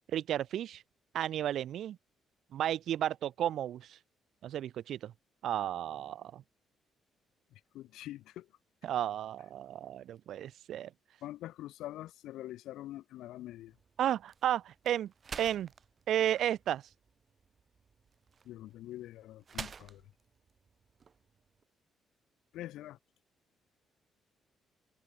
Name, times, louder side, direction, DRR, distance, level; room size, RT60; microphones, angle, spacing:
voice 1, 0.1-0.8 1.1-2.0 2.5-4.0 4.4-5.1 5.4-6.4 8.8-10.9 14.0-15.1 15.4-15.7 16.1-16.9, right 11 dB, 70° right, 1.6 m, -33 dB
voice 2, 7.7-8.5 11.2-13.8 18.4-20.0 22.5-23.0, left 14 dB, 85° left, 6.3 m, -44 dB
sound 1, 13.4-21.6, right 6 dB, 45° right, 5.1 m, -50 dB
cardioid pair, 90°, 0 cm